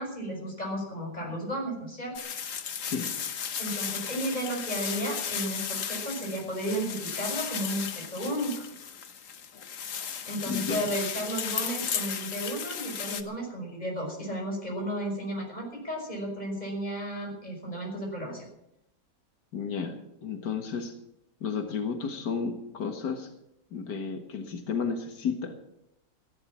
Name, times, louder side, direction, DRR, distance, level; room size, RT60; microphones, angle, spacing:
voice 1, 0.0-2.2 3.6-8.7 10.3-18.5, right 1 dB, 25° left, 0 dB, 5.9 m, -33 dB
sound 1, 2.2-13.2, left 7 dB, 55° left, 1.4 m, -35 dB
voice 2, 10.5-10.8 19.5-20.9 21.4-23.3 23.7-25.6, left 6 dB, 90° left, 5 dB, 2.2 m, -32 dB
15.5 x 11.0 x 7.4 m, 0.80 s
omnidirectional pair, 1.7 m